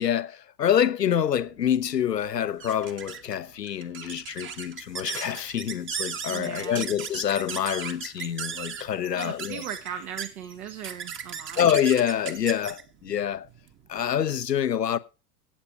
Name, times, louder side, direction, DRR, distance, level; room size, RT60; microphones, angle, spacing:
voice 1, 0.0-9.6 11.6-13.5 13.9-15.0, left 9 dB, 85° left, 0.9 m, -26 dB
sound 1, 1.4-14.4, right 7 dB, 25° right, 1.3 m, -38 dB
voice 2, 6.3-6.9 9.1-11.6, right 9 dB, 65° right, 1.8 m, -38 dB
15.0 x 8.4 x 4.8 m
figure-of-eight pair, 90°, 47 cm